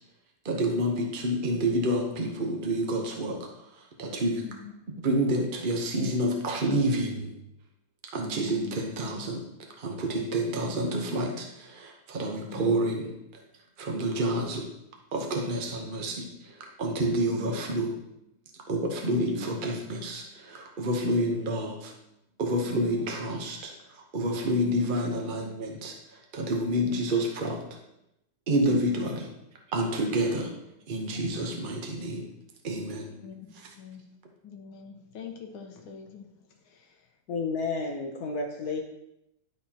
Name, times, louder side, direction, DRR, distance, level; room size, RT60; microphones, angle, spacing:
voice 1, 0.4-3.5 4.0-4.4 5.0-7.3 8.1-9.4 9.8-13.1 13.8-14.7 15.1-16.3 16.8-17.9 18.7-21.9 22.4-23.6 24.1-25.9 26.3-27.6 28.5-29.3 29.7-30.5 30.9-32.3 32.6-33.1, right 1 dB, 50° right, 1 dB, 0.6 m, -28 dB
voice 2, 4.4-4.7 8.3-8.8 12.5-12.9 17.2-17.6 19.0-19.5 22.6-23.2 24.6-24.9 26.8-27.1 28.6-29.2 33.2-34.0 34.4-36.3 36.7-37.1, left 6 dB, 75° left, 3 dB, 1.7 m, -44 dB
voice 3, 37.3-38.8, left 4 dB, 60° left, 2 dB, 1.0 m, -31 dB
12.0 x 4.3 x 2.9 m, 0.83 s
omnidirectional pair, 2.2 m